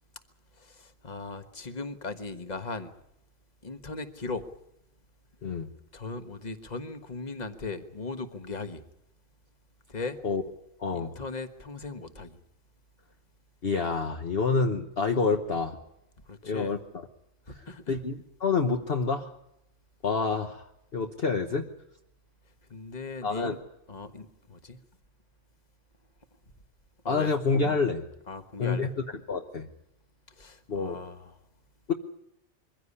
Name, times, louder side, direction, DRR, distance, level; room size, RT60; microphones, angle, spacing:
voice 1, 0.5-2.9 3.6-4.5 5.9-8.8 9.9-10.2 10.9-12.4 16.3-16.8 17.5-18.0 22.7-23.6 23.9-24.8 27.0-27.3 28.3-28.9 30.3-31.4, left 3 dB, 35° left, 9 dB, 1.5 m, -38 dB
voice 2, 10.8-11.1 13.6-15.8 16.4-16.8 17.5-19.3 20.0-21.7 23.2-23.6 27.0-28.0 28.6-28.9 29.3-29.7 30.7-31.0 31.9-32.0, left 4 dB, 50° left, 5 dB, 1.3 m, -28 dB
23.0 x 15.5 x 9.8 m, 0.85 s
omnidirectional pair, 1.4 m